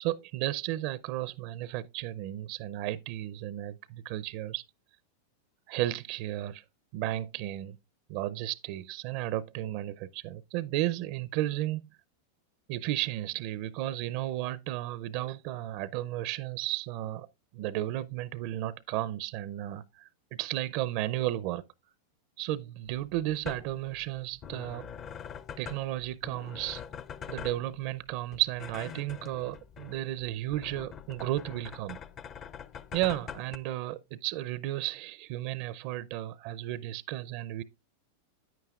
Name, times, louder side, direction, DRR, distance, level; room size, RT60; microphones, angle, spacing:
voice 1, 0.0-4.6 5.7-6.6 6.9-7.8 8.1-11.9 12.7-17.3 17.5-20.1 20.4-21.6 22.4-24.9 25.6-26.8 27.3-32.0 32.9-37.6, right 15 dB, 55° right, 0.4 m, -33 dB
sound 1, 22.9-33.6, left 8 dB, 35° left, 0.6 m, -44 dB
9.2 x 9.1 x 2.3 m
hypercardioid pair, 110°, 0 cm